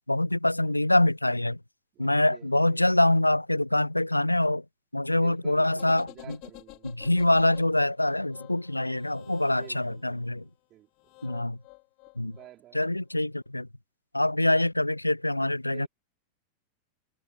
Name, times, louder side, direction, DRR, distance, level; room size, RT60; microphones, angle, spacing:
voice 1, 0.1-1.6 2.0-4.6 4.9-6.4 7.0-10.4 11.2-11.6 12.2-12.4 12.7-13.7 14.1-15.9, left 1 dB, 85° left, 0.3 m, -25 dB
voice 2, 1.9-2.8 5.1-7.0 9.5-11.1 12.2-12.9 15.6-15.9, right 14 dB, 35° right, 2.8 m, -52 dB
sound 1, 5.7-10.2 11.0-12.8 13.1-13.2, left 29 dB, 45° left, 6.5 m, -50 dB
figure-of-eight pair, 90°, 0 cm